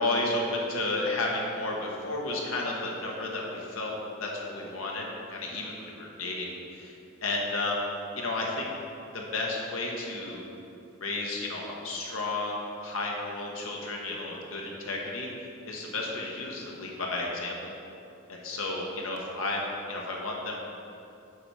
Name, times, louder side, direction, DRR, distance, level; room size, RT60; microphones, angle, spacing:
voice 1, 0.0-6.5 6.7-6.9 7.2-7.8 8.2-8.7 9.1-10.4 11.0-15.3 15.6-17.7 18.3-20.5, left 2 dB, 85° left, -2 dB, 1.4 m, -32 dB
8.0 x 4.9 x 5.7 m, 2.8 s
head